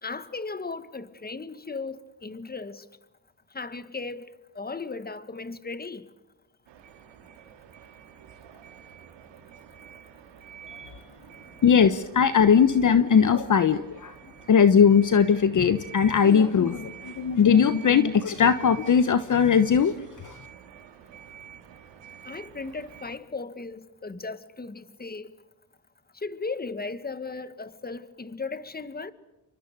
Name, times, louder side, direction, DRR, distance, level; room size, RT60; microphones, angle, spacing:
voice 1, 0.0-2.8 3.5-4.3 4.6-6.1 22.3-25.3 26.2-29.1, left 4 dB, 20° left, 1.8 m, -36 dB
sound 1, 6.7-23.2, right 8 dB, 85° right, 4.1 m, -48 dB
voice 2, 11.6-14.1 14.5-19.9 20.2-20.3, left 7 dB, 45° left, 1.2 m, -19 dB
28.5 x 24.5 x 6.8 m
cardioid pair, 80°, 43 cm